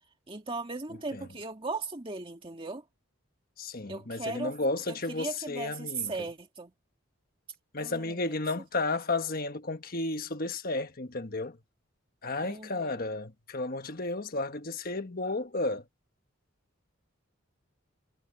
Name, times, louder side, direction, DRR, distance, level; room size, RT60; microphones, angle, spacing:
voice 1, 0.3-2.8 3.9-4.5 4.9-6.7 7.8-8.3 12.4-13.0, right 3 dB, 25° right, 2.0 m, -37 dB
voice 2, 3.6-6.1 7.7-11.6 12.2-15.8, left 2 dB, 45° left, 1.4 m, -33 dB
head